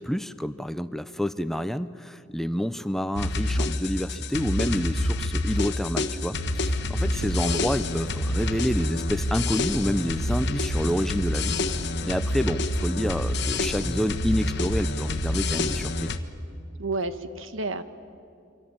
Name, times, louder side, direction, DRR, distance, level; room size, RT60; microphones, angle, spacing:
voice 1, 0.0-11.6 12.0-16.1, equal, ahead, 12 dB, 0.6 m, -28 dB
sound 1, 3.2-16.2, left 1 dB, 60° left, 1.3 m, -27 dB
voice 2, 7.1-7.6 16.8-17.8, right 3 dB, 80° right, 10 dB, 1.4 m, -31 dB
28.0 x 24.0 x 8.8 m, 2.5 s
head